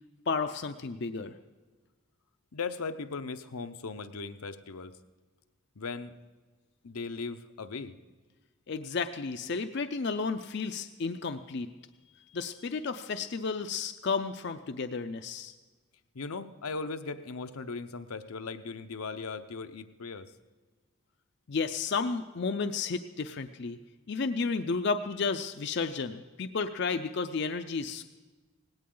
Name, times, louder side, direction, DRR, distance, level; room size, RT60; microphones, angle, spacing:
voice 1, 0.3-1.3 8.7-11.7 12.3-15.5 21.5-23.8 24.1-28.0, left 4 dB, 50° left, 8 dB, 0.5 m, -32 dB
voice 2, 2.5-4.9 5.8-6.1 6.8-8.0 16.1-20.3, left 4 dB, 85° left, 8 dB, 0.8 m, -38 dB
18.5 x 17.0 x 3.8 m, 1.3 s
head